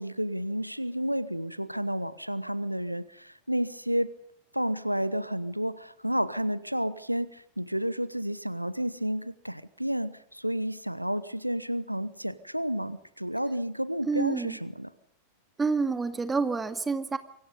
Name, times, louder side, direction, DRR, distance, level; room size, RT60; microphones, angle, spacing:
voice 1, 0.0-4.1 4.5-14.9, equal, 90° right, 18 dB, 1.0 m, -31 dB
voice 2, 14.1-14.6 15.6-17.2, right 4 dB, 15° right, 10 dB, 2.2 m, -28 dB
28.0 x 24.5 x 5.3 m, 0.71 s
figure-of-eight pair, 90°, 0 cm